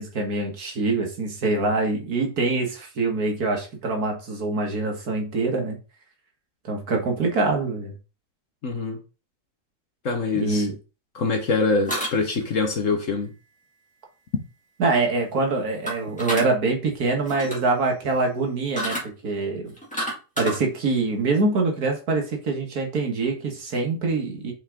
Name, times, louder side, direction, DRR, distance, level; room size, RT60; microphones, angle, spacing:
voice 1, 0.0-5.8 6.7-7.9 10.3-10.8 14.8-19.0 19.2-19.7 20.4-24.5, right 3 dB, 60° right, 1.8 m, -24 dB
voice 2, 8.6-9.0 10.0-10.7 11.1-13.3, left 4 dB, 50° left, 1.3 m, -24 dB
sound 1, 11.9-12.6 15.9-16.5 17.2-17.7 18.8-19.0 19.7-20.6, equal, 5° left, 1.9 m, -29 dB
5.5 x 4.5 x 3.7 m
omnidirectional pair, 1.9 m